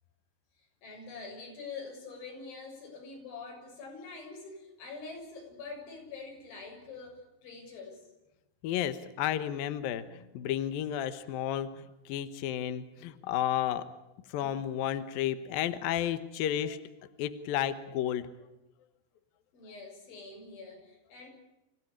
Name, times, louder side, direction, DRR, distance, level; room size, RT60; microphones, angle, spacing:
voice 1, 0.8-8.1 19.5-21.3, left 4 dB, 85° left, 1 dB, 9.3 m, -45 dB
voice 2, 8.6-13.9 14.3-16.8 17.2-18.3, left 11 dB, 65° left, 11 dB, 2.5 m, -32 dB
27.0 x 16.5 x 8.8 m, 0.93 s
omnidirectional pair, 5.2 m